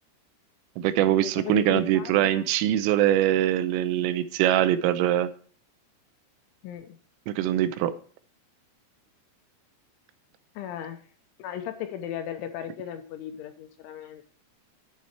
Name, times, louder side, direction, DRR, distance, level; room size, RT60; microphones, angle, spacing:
voice 1, 0.8-5.3 7.3-7.9, right 12 dB, 85° right, 11 dB, 3.2 m, -23 dB
voice 2, 1.4-2.5 6.6-7.0 10.6-11.0 11.4-14.2, left 10 dB, 75° left, 7 dB, 3.0 m, -36 dB
10.5 x 8.6 x 4.5 m, 0.43 s
omnidirectional pair, 6.0 m